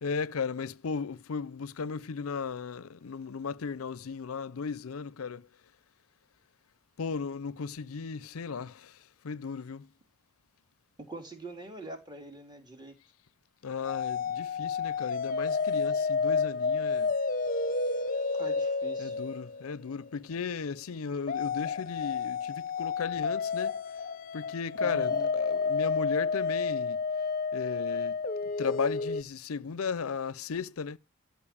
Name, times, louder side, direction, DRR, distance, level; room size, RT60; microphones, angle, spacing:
voice 1, 0.0-5.4 7.0-8.9 9.2-9.9 13.6-17.1 19.0-23.8 24.3-27.0 27.5-28.2 28.6-31.0, left 5 dB, 80° left, 0.5 m, -36 dB
voice 2, 11.1-13.0 18.4-19.2 24.8-25.3, right 2 dB, 20° right, 3.0 m, -44 dB
sound 1, 13.9-20.1 21.3-29.2, left 4 dB, 40° left, 0.8 m, -30 dB
13.5 x 5.6 x 8.5 m
head